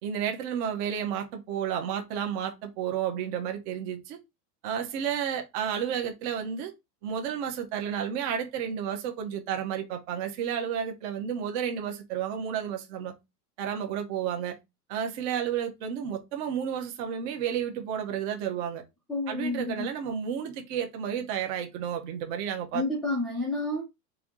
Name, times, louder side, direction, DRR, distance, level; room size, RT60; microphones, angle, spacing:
voice 1, 0.0-4.2 4.6-6.7 7.0-13.1 13.6-14.5 14.9-18.8 19.3-22.8, right 8 dB, 45° right, 0.9 m, -31 dB
voice 2, 19.1-19.9 22.7-23.8, left 2 dB, ahead, 0.3 m, -30 dB
4.6 x 2.7 x 3.6 m
supercardioid pair, 160°, 49 cm